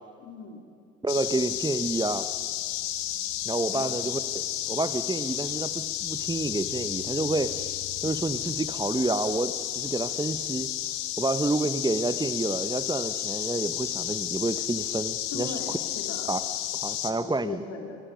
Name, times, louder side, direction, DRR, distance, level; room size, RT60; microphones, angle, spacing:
voice 1, 0.2-0.6 3.7-3.9 15.3-16.2 17.2-18.0, left 4 dB, 55° left, 1 dB, 4.2 m, -38 dB
voice 2, 1.0-2.3 3.4-7.7 8.0-10.7 11.2-15.6 16.3-16.4 16.8-17.6, right 2 dB, 15° right, 12 dB, 1.2 m, -29 dB
sound 1, 1.1-17.1, left 13 dB, 85° left, 1.2 m, -32 dB
28.0 x 20.5 x 5.3 m, 2.2 s
hypercardioid pair, 55°, 29 cm